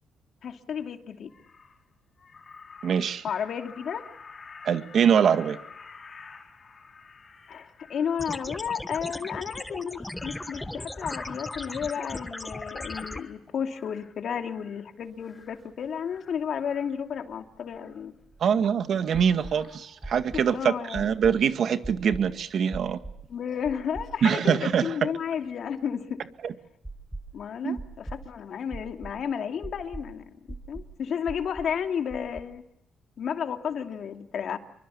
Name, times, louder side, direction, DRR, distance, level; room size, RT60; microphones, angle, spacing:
voice 1, 0.4-1.3 3.2-4.0 7.5-18.1 20.3-21.0 23.3-26.2 27.3-30.2 30.7-32.6 33.2-34.6, left 7 dB, 60° left, 6 dB, 2.7 m, -32 dB
Crow, 0.8-0.9 1.3-1.8 2.2-8.2 9.8-14.1 14.5-14.9 15.2-15.6 15.9-17.0 17.7-18.0 19.0-20.1 20.4-20.6, left 5 dB, 40° left, 5.2 m, -48 dB
voice 2, 2.8-3.2 4.6-5.6 18.4-23.0 24.2-24.9 26.4-26.5 27.6-27.8, right 7 dB, 60° right, 9 dB, 2.0 m, -24 dB
sound 1, 8.2-13.2, left 1 dB, 10° left, 1.4 m, -38 dB
sound 2, 15.3-15.4 15.7-15.8 17.3-18.5 19.1-19.6 20.0-20.5 20.9-21.4 21.8-22.3 22.7-23.2 23.7-24.4 24.7-24.8 26.8-27.4 27.8-28.2 28.7-29.2 29.6-30.1 30.5-30.9 31.3-31.7 32.1-32.4, right 2 dB, 5° right, 6.0 m, -40 dB
27.5 x 24.5 x 7.1 m, 0.81 s
cardioid pair, 90°, 0 cm